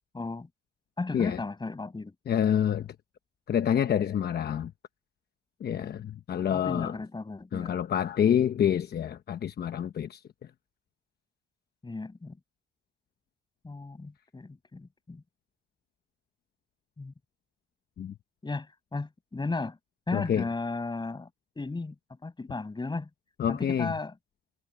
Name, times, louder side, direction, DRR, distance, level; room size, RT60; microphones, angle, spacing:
voice 1, 0.1-0.5 1.0-2.1 6.5-7.8 11.8-12.4 13.6-15.2 17.0-17.1 18.4-19.8 20.1-21.3 21.6-22.0 22.2-23.1 23.5-24.1, left 3 dB, 20° left, 6.9 m, -35 dB
voice 2, 2.3-2.9 3.5-4.7 5.6-7.0 7.5-10.2 18.0-18.1 20.1-20.4 23.4-23.9, left 9 dB, 55° left, 1.0 m, -27 dB
cardioid pair, 90°, 20 cm